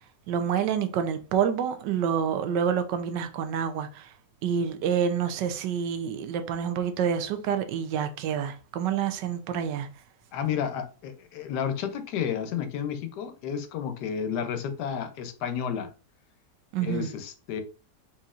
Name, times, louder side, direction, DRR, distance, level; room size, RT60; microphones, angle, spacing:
voice 1, 0.3-4.1 4.4-9.9 16.7-17.1, right 8 dB, 85° right, 1.3 m, -28 dB
voice 2, 10.3-15.9 16.8-17.6, left 8 dB, 75° left, 1.2 m, -31 dB
4.2 x 3.8 x 2.4 m
omnidirectional pair, 1.9 m